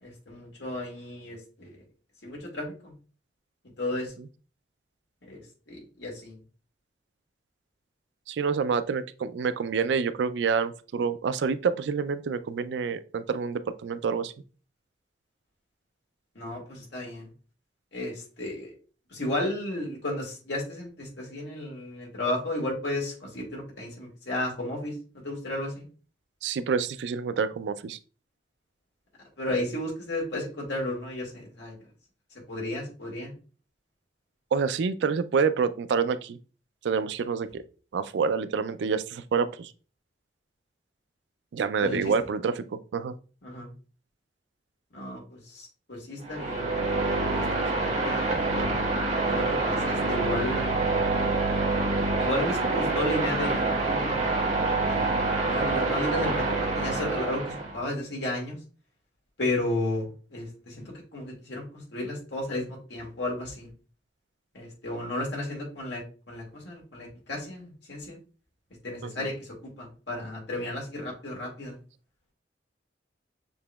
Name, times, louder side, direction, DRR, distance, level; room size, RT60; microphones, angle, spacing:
voice 1, 0.0-1.7 2.2-2.9 3.8-4.1 5.2-5.4 5.7-6.4 16.4-17.3 17.9-18.7 19.1-24.9 25.2-25.9 29.4-31.7 32.5-33.3 41.8-42.0 43.4-43.7 44.9-46.7 47.3-47.4 47.7-48.5 49.3-50.8 52.2-58.6 59.4-60.0 60.3-61.6 61.9-63.7 64.5-66.0 66.3-68.2 68.8-69.5 69.8-71.8, left 1 dB, 75° left, 1.8 m, -33 dB
voice 2, 3.9-4.3 8.3-14.3 26.4-28.0 34.5-36.4 36.8-37.6 37.9-39.7 41.5-43.1 69.0-69.3, right 5 dB, 75° right, 0.4 m, -28 dB
sound 1, 46.2-57.8, right 3 dB, 40° right, 1.1 m, -26 dB
6.9 x 2.9 x 2.2 m
head